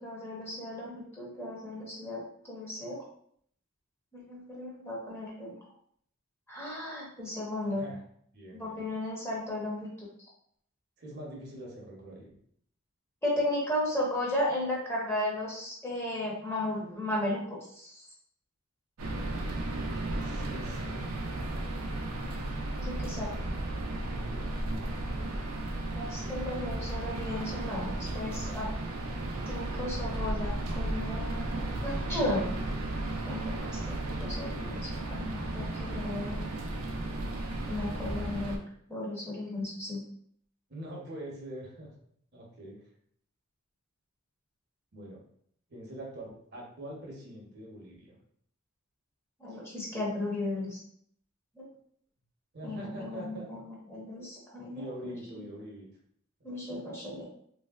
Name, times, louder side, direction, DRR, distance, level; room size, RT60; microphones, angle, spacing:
voice 1, 0.0-3.0 4.1-5.5 6.5-7.9 8.5-10.1 13.2-18.0 22.8-23.3 25.9-28.7 29.5-32.4 33.2-33.5 33.9-36.5 37.7-38.6 38.9-40.0 49.4-50.8 51.6-51.7 52.6-55.1 56.4-57.2, left 1 dB, 10° left, -4 dB, 0.7 m, -35 dB
voice 2, 8.3-8.8 11.0-12.3 20.0-21.9 23.1-23.6 23.9-25.4 40.7-41.9 42.3-42.8 44.9-45.2 45.7-48.2 49.5-49.6 52.5-53.5 54.7-55.9 56.4-56.5, right 1 dB, 50° right, -2 dB, 0.8 m, -45 dB
sound 1, 19.0-38.6, right 1 dB, 75° right, 0.5 m, -34 dB
3.1 x 2.6 x 2.3 m, 0.65 s
head